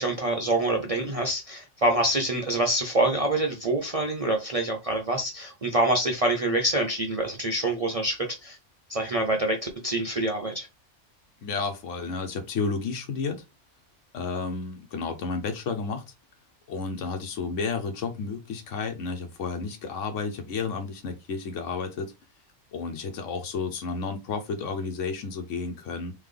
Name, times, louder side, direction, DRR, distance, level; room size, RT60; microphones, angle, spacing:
voice 1, 0.0-8.6 8.9-10.7, right 1 dB, 35° right, 0.7 m, -26 dB
voice 2, 11.4-13.4 14.1-16.0 16.7-22.1 22.7-26.1, left 4 dB, 85° left, 1.2 m, -31 dB
3.8 x 3.2 x 3.3 m
omnidirectional pair, 1.3 m